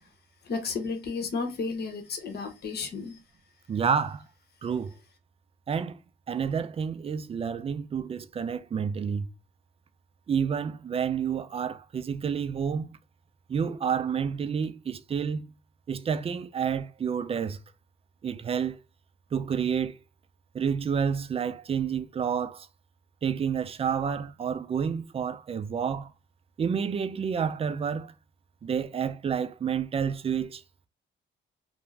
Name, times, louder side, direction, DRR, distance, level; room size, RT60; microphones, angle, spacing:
voice 1, 0.5-3.2, left 4 dB, 55° left, 0.9 m, -32 dB
voice 2, 3.7-4.3 4.6-4.9 5.7-6.0 6.3-9.3 10.3-13.0 13.5-15.5 15.9-17.6 18.2-18.8 19.3-20.0 20.5-22.7 23.2-26.1 26.6-28.1 28.6-30.6, right 7 dB, 30° right, 0.3 m, -29 dB
2.5 x 2.1 x 3.1 m
cardioid pair, 90°, 20 cm